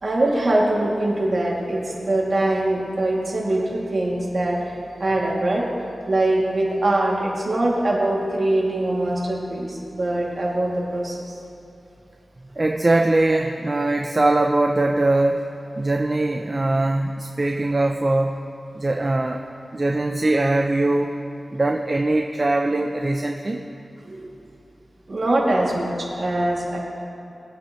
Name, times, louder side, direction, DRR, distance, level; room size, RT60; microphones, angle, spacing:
voice 1, 0.0-5.7 6.1-11.3 24.0-24.3 25.1-26.8, right 1 dB, 55° right, -4 dB, 2.6 m, -23 dB
voice 2, 12.6-15.5 15.8-18.3 18.8-19.4 19.7-21.1 21.5-23.6, right 2 dB, 35° right, 3 dB, 0.6 m, -21 dB
21.0 x 8.4 x 3.2 m, 2.9 s
wide cardioid pair, 90°, 0 cm